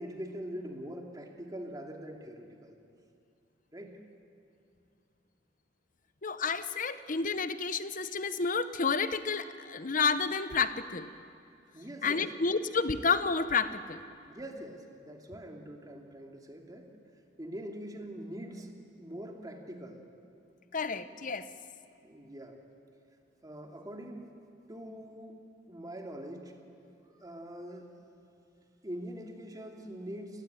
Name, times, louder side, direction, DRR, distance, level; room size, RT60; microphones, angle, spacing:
voice 1, 0.0-2.8 3.7-4.0 11.7-12.3 14.3-16.9 17.4-20.0 22.0-22.6 23.4-24.3 24.7-25.4 25.7-26.6 27.1-27.9 28.8-30.4, equal, 20° right, 2 dB, 2.7 m, -43 dB
voice 2, 6.2-11.1 12.0-14.0 20.7-21.5, left 5 dB, 45° left, 12 dB, 1.0 m, -30 dB
28.5 x 19.0 x 9.3 m, 2.5 s
head